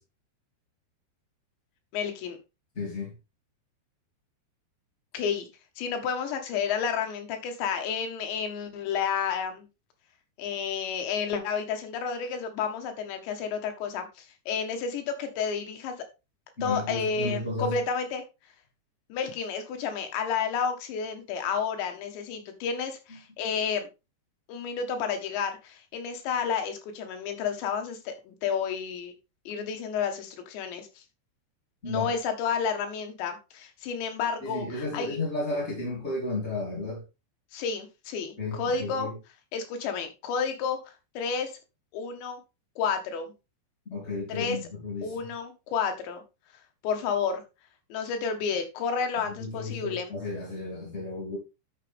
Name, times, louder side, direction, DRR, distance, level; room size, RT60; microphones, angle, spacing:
voice 1, 1.9-2.4 5.1-5.5 5.8-9.7 10.4-15.9 16.6-18.2 19.1-23.9 24.5-29.1 29.5-31.0 31.9-35.2 37.5-39.1 39.5-41.6 41.9-42.4 42.8-43.3 44.3-44.6 45.0-46.2 46.8-47.4 47.9-50.1, left 6 dB, 75° left, 3.7 m, -31 dB
voice 2, 2.8-3.1 16.6-17.8 31.8-32.1 34.4-37.0 38.4-39.2 43.9-45.1 49.4-51.4, left 2 dB, 20° left, 2.3 m, -33 dB
11.5 x 7.0 x 3.5 m
omnidirectional pair, 5.2 m